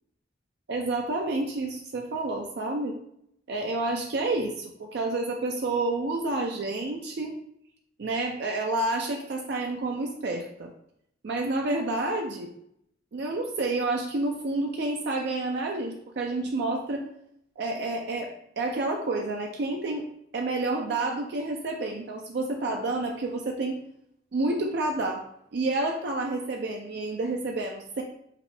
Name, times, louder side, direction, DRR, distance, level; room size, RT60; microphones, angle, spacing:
voice 1, 0.7-3.0 3.5-7.3 8.0-10.7 11.2-12.5 13.1-17.0 17.6-20.1 20.3-23.8 24.3-25.2 25.5-28.0, right 2 dB, 60° right, 2 dB, 0.4 m, -29 dB
5.0 x 2.7 x 3.3 m, 0.74 s
head